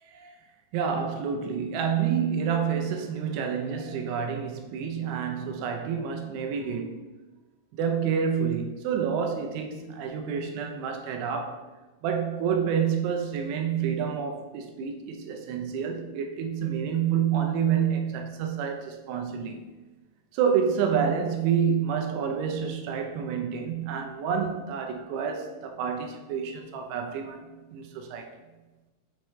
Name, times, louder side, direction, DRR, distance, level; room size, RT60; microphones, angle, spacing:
voice 1, 0.7-7.0 7.7-11.6 12.0-19.6 20.3-27.4 27.7-28.3, right 7 dB, 85° right, 4 dB, 2.7 m, -28 dB
7.6 x 4.6 x 3.1 m, 1.2 s
omnidirectional pair, 4.8 m